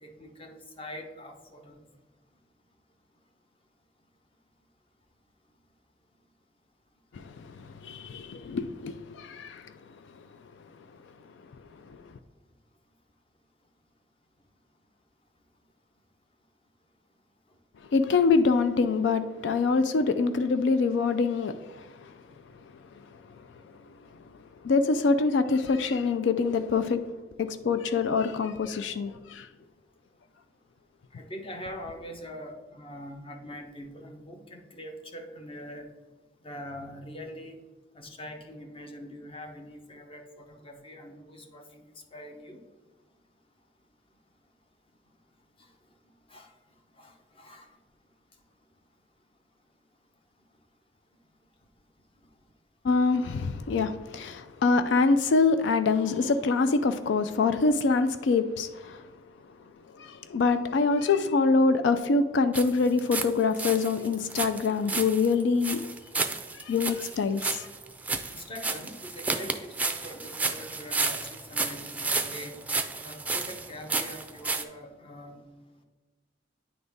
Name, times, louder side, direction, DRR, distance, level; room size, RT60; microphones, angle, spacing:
voice 1, 0.0-1.8 31.1-35.9 36.4-37.6 37.9-41.8 42.1-42.6 46.3-46.5 47.0-47.7 68.3-72.6 73.0-75.4, equal, 30° left, 0.8 m, -43 dB
voice 2, 7.1-9.7 11.9-12.0 17.9-22.2 23.0-23.5 24.6-27.1 27.4-29.5 52.8-59.0 59.9-65.8 66.5-67.7, left 4 dB, 85° left, 0.4 m, -25 dB
sound 1, 62.5-63.3 63.5-74.6, right 3 dB, 10° right, 0.4 m, -32 dB
9.4 x 4.0 x 3.5 m
head